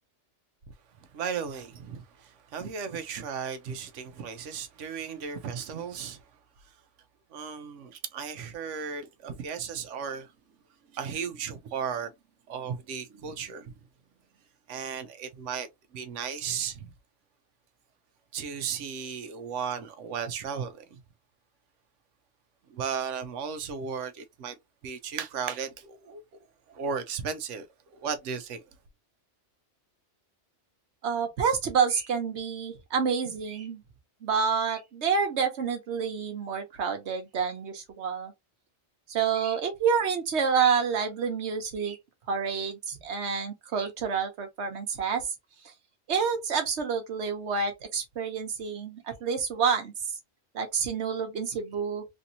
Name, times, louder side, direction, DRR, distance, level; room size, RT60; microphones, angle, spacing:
voice 1, 1.1-6.2 7.3-10.3 10.9-12.1 12.5-13.7 14.7-16.9 18.3-21.0 22.7-24.6 24.8-26.2 26.7-27.7 27.9-28.6, right 6 dB, 85° right, 1.0 m, -35 dB
voice 2, 31.0-33.8 34.2-38.3 39.1-42.0 42.3-45.3 45.6-45.7 46.1-49.9 50.5-52.0, right 6 dB, 65° right, 1.2 m, -28 dB
3.4 x 2.7 x 2.6 m
omnidirectional pair, 1.2 m